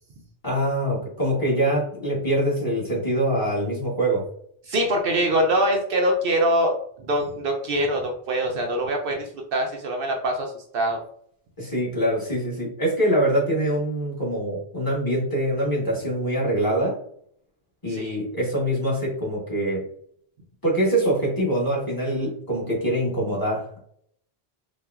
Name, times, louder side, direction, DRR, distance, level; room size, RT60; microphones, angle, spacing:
voice 1, 0.4-4.2 11.6-17.0 17.8-19.8 20.6-23.8, right 1 dB, 20° left, -6 dB, 1.1 m, -24 dB
voice 2, 4.7-6.7 7.0-9.2 9.5-11.0 17.9-18.2, right 1 dB, 65° right, 2 dB, 0.7 m, -23 dB
4.1 x 2.2 x 2.3 m, 0.64 s
omnidirectional pair, 1.1 m